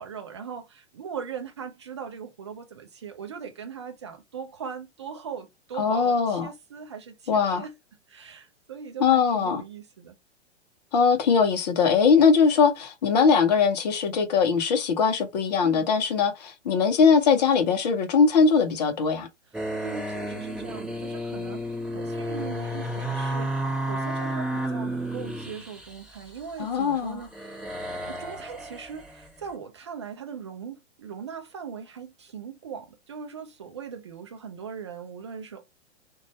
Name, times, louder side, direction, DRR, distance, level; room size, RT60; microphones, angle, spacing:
voice 1, 0.0-7.7 8.1-10.2 15.6-16.0 19.7-27.6 28.0-35.6, right 7 dB, 25° right, 0.3 m, -40 dB
voice 2, 5.8-6.5 7.3-7.6 9.0-9.6 10.9-19.3 26.6-27.2, left 5 dB, 35° left, 0.6 m, -21 dB
sound 1, 19.5-26.8 27.2-29.3, right 1 dB, 5° right, 0.7 m, -32 dB
2.5 x 2.2 x 2.9 m
figure-of-eight pair, 110°, 35 cm